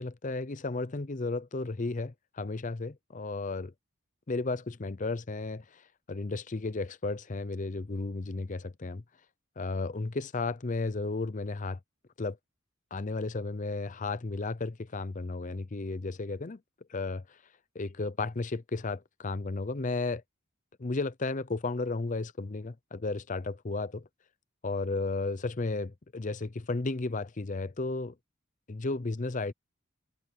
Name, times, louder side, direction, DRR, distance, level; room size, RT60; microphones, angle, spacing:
voice 1, 0.0-3.7 4.3-5.8 6.1-9.0 9.6-11.8 12.2-12.4 12.9-16.6 16.9-17.4 17.7-20.2 20.8-24.1 24.6-28.1 28.7-29.5, left 3 dB, 35° left, 0.6 m, -33 dB
head